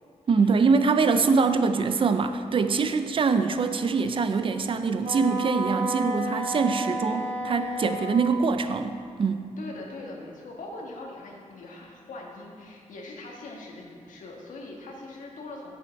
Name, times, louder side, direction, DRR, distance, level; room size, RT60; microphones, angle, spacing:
voice 1, 0.3-9.4, right 4 dB, 45° right, 9 dB, 0.5 m, -24 dB
Wind instrument woodwind instrument, 5.0-8.5, right 1 dB, 85° right, 1.7 m, -31 dB
voice 2, 6.8-7.2 9.6-15.8, left 2 dB, 90° left, -1 dB, 1.6 m, -41 dB
8.4 x 7.1 x 5.2 m, 2.2 s
wide cardioid pair, 105°, 13 cm